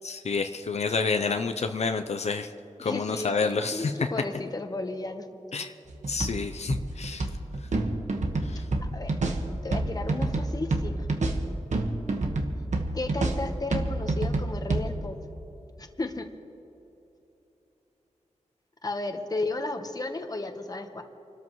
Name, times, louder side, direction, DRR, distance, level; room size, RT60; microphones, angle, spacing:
voice 1, 0.0-2.5 2.8-4.1 5.5-5.7 6.1-7.3 8.4-8.7, left 4 dB, 60° left, 6 dB, 0.6 m, -29 dB
voice 2, 2.8-5.3 8.5-8.6 8.9-9.2 9.6-11.1 12.9-15.2 15.8-16.3 18.8-21.0, left 2 dB, 30° left, 6 dB, 1.1 m, -34 dB
sound 1, 5.9-14.9, right 2 dB, 70° right, 1.4 m, -29 dB
28.0 x 13.0 x 3.1 m, 2.9 s
wide cardioid pair, 130°, 13 cm